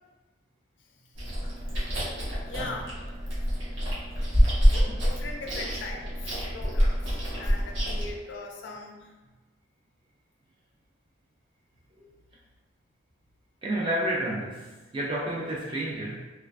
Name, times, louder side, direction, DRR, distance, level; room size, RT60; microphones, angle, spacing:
Chewing mastication, 1.2-8.1, equal, 85° right, 0.8 m, -26 dB
voice 1, 2.5-2.9 4.7-9.1, left 3 dB, 75° left, 1 dB, 0.4 m, -40 dB
voice 2, 13.6-16.2, right 1 dB, 25° right, -6 dB, 0.3 m, -31 dB
2.3 x 2.2 x 2.3 m, 1.2 s
head